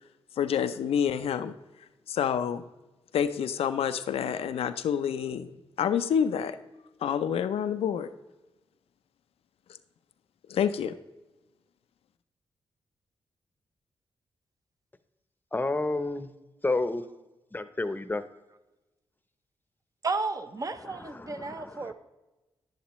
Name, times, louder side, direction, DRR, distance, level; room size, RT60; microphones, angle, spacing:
voice 1, 0.4-1.5 2.1-2.6 3.1-5.5 5.8-6.5 7.0-8.1 10.5-10.9, left 8 dB, 90° left, 11 dB, 0.5 m, -27 dB
voice 2, 15.5-16.3 16.6-17.0 17.5-18.2 20.9-21.9, left 2 dB, 20° left, 11 dB, 0.8 m, -30 dB
voice 3, 20.0-21.9, right 3 dB, 35° right, 10 dB, 0.8 m, -33 dB
10.5 x 10.5 x 3.1 m, 1.1 s
cardioid pair, 65°, 10 cm